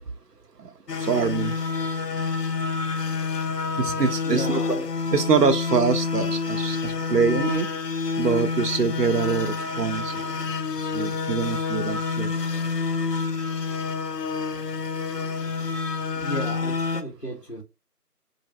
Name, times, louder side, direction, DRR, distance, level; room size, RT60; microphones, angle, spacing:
sound 1, 0.9-17.0, left 4 dB, 85° left, 0.7 m, -28 dB
voice 1, 1.0-1.6 3.8-4.6 5.1-7.7 8.2-10.1 10.9-12.3, right 5 dB, 80° right, 0.7 m, -24 dB
voice 2, 4.2-4.9 16.1-17.6, equal, 40° left, 1.0 m, -33 dB
4.0 x 2.6 x 3.2 m
figure-of-eight pair, 180°, 47 cm